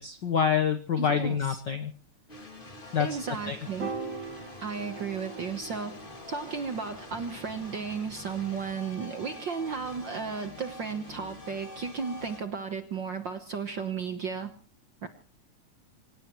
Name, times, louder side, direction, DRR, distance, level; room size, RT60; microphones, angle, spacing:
voice 1, 0.0-1.9 2.9-3.1 3.5-3.6, left 7 dB, 65° left, 9 dB, 1.1 m, -26 dB
voice 2, 1.0-1.6 3.0-3.9 4.6-6.0 6.3-14.5 15.0-15.1, right 5 dB, 55° right, 7 dB, 1.3 m, -34 dB
sound 1, 2.3-12.4, left 2 dB, 20° left, 2.1 m, -46 dB
Piano, 3.8-10.2, right 4 dB, 40° right, 2.8 m, -43 dB
26.5 x 17.5 x 3.1 m, 0.38 s
omnidirectional pair, 3.4 m